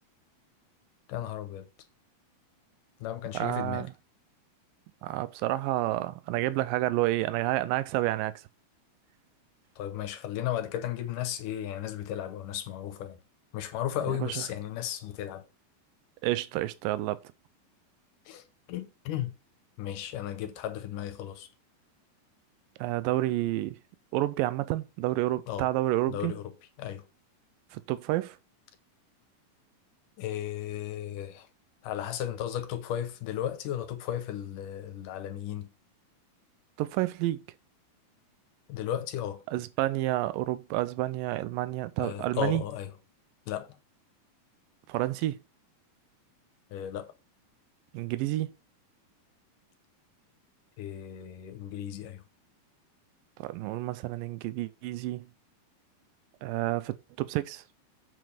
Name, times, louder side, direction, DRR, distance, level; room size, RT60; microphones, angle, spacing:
voice 1, 1.1-1.7 3.0-3.9 9.8-13.2 13.5-15.5 18.3-19.3 19.8-21.5 25.5-25.7 26.1-27.0 30.2-31.5 31.8-35.7 38.7-39.4 42.0-42.9 43.5-43.7 46.7-47.1 50.8-52.2, left 11 dB, 70° left, 2.3 m, -35 dB
voice 2, 3.3-3.9 5.0-8.3 14.1-14.4 16.2-17.2 22.8-23.8 24.1-26.3 27.7-28.4 36.8-37.4 39.5-42.6 44.9-45.4 47.9-48.5 53.4-55.2 56.4-57.6, right 16 dB, 80° right, 2.2 m, -29 dB
7.8 x 5.0 x 5.1 m
omnidirectional pair, 4.2 m